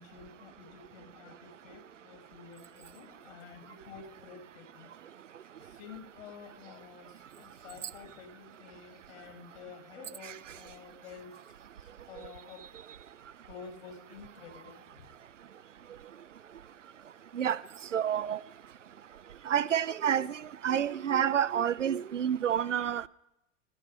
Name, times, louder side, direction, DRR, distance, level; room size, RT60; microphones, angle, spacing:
voice 1, 0.0-4.9 5.4-11.4 12.1-12.6 13.5-15.1, left 6 dB, 55° left, 6.0 m, -50 dB
voice 2, 17.9-18.4 19.5-20.3 20.6-23.1, right 9 dB, 75° right, 0.8 m, -28 dB
25.5 x 25.0 x 5.7 m
figure-of-eight pair, 90°, 38 cm